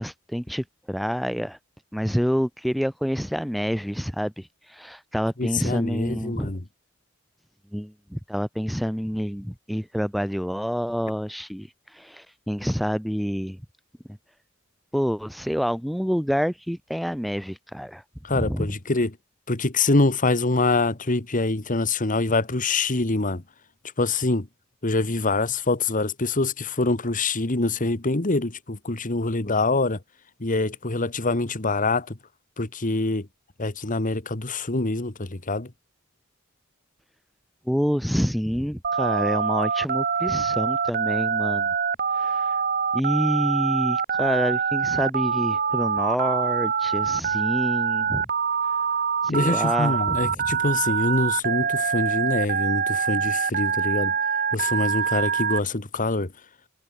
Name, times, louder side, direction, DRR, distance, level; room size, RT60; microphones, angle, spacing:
voice 1, 0.0-1.6 1.9-6.5 7.7-13.6 14.9-18.0 18.3-18.7 37.7-41.7 42.1-42.6 42.9-48.3 49.2-50.3, equal, ahead, 1.0 m, -27 dB
voice 2, 5.4-6.6 18.2-19.2 19.5-23.4 24.0-24.5 24.8-30.0 30.4-32.2 32.6-33.3 33.6-35.7 49.3-54.1 54.5-56.3, left 3 dB, 40° left, 1.6 m, -25 dB
Telephone, 38.8-55.6, right 6 dB, 45° right, 4.2 m, -25 dB
head